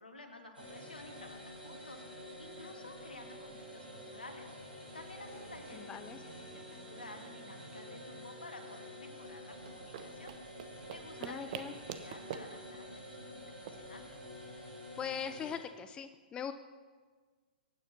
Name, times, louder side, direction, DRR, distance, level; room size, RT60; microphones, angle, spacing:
voice 1, 0.0-10.4 10.9-14.0, left 2 dB, 75° left, 4 dB, 2.7 m, -52 dB
sound 1, 0.5-15.6, left 1 dB, 80° right, 6.3 m, -49 dB
voice 2, 5.7-6.2 11.2-11.7 15.0-16.5, left 8 dB, 15° left, 11 dB, 0.6 m, -41 dB
sound 2, 9.5-14.7, right 9 dB, 45° right, 1.1 m, -47 dB
23.0 x 10.0 x 5.8 m, 1.5 s
figure-of-eight pair, 115°, 5 cm